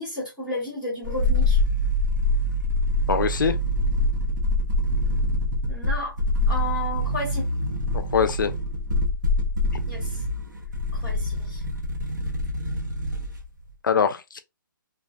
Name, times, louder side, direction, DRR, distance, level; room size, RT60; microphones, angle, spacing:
voice 1, 0.0-1.6 4.1-4.2 4.6-4.7 5.7-6.2 6.5-7.5 9.9-10.2 10.9-11.6, left 2 dB, 5° right, 0.9 m, -32 dB
sound 1, 1.0-13.4 13.7-13.8, left 1 dB, 60° right, 0.9 m, -25 dB
voice 2, 3.1-3.5 7.9-8.5 13.8-14.4, left 6 dB, 65° left, 0.4 m, -23 dB
2.3 x 2.2 x 2.5 m
hypercardioid pair, 165°, 11 cm